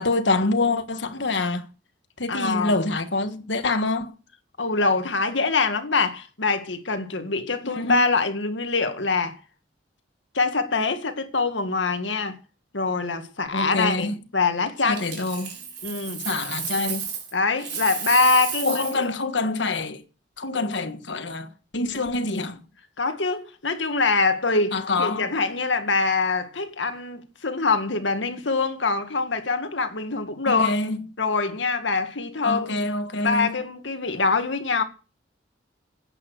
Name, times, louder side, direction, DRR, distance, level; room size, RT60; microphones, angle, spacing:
voice 1, 0.0-1.7 2.2-4.1 7.6-8.0 13.5-14.2 14.8-15.6 16.2-17.1 18.6-20.0 20.4-22.6 24.7-25.3 30.5-31.0 32.4-33.6, left 2 dB, 70° left, 1.5 m, -26 dB
voice 2, 2.3-2.8 4.6-9.4 10.3-12.4 12.7-15.0 15.8-16.2 17.3-19.0 23.0-30.7 31.2-32.8 33.2-34.8, left 4 dB, 90° left, 2.0 m, -24 dB
Coin (dropping), 14.9-17.3 17.6-19.0 21.9-22.1, right 7 dB, 65° right, 4.4 m, -32 dB
11.0 x 9.0 x 6.4 m
head